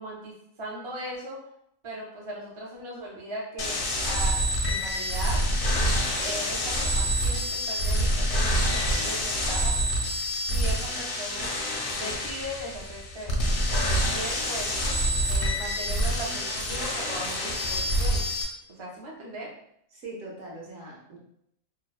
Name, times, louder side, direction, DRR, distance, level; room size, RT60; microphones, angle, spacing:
voice 1, 0.0-1.4 1.8-5.4 5.7-5.9 6.2-9.8 10.5-11.5 11.9-14.7 15.2-18.3 18.7-19.5, right 1 dB, 45° right, -3 dB, 0.3 m, -38 dB
sound 1, 3.6-18.4, equal, 60° left, 0.6 m, -27 dB
voice 2, 19.9-21.2, right 2 dB, 75° right, -3 dB, 1.1 m, -41 dB
2.9 x 2.0 x 2.3 m, 0.73 s
omnidirectional pair, 1.3 m